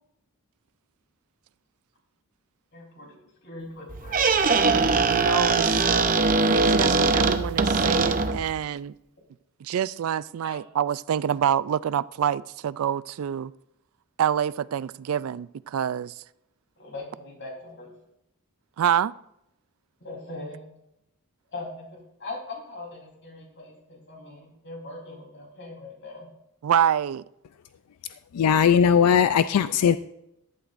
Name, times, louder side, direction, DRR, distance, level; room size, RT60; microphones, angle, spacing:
voice 1, 2.7-3.2 3.4-4.5 10.4-10.6 16.8-17.9 20.0-20.6 21.5-26.3, left 2 dB, 55° left, 3.7 m, -40 dB
Squeak, 3.9-8.5, right 4 dB, 40° right, 0.7 m, -21 dB
voice 2, 5.1-5.8 6.5-8.9 9.6-13.5 14.2-16.1 18.8-19.1 26.6-27.2, right 9 dB, 70° right, 0.3 m, -26 dB
voice 3, 28.3-30.0, left 7 dB, 90° left, 0.4 m, -19 dB
14.5 x 11.5 x 2.5 m
head